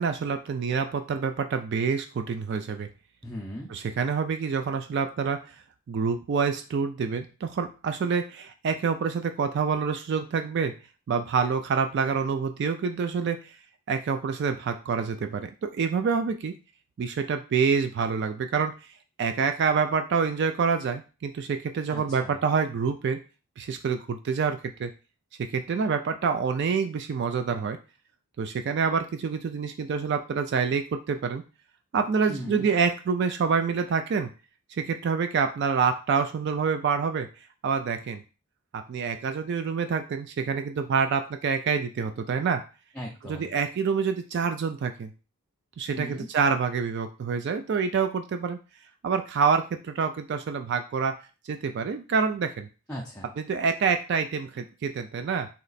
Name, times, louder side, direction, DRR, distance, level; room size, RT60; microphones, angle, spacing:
voice 1, 0.0-2.9 3.7-5.6 5.9-10.7 11.1-13.6 13.9-16.6 17.0-18.7 19.2-23.2 23.6-24.9 25.4-27.8 28.4-31.4 31.9-34.3 34.8-37.3 37.6-38.2 38.7-42.6 43.3-45.1 45.8-48.6 49.0-51.2 51.4-52.7 53.4-55.5, right 5 dB, 50° right, 7 dB, 0.3 m, -27 dB
voice 2, 3.2-3.7 21.9-22.4 32.3-32.7 42.9-43.5 45.9-46.3 52.9-53.3, equal, 5° left, -3 dB, 0.5 m, -38 dB
3.2 x 2.9 x 4.0 m, 0.33 s
head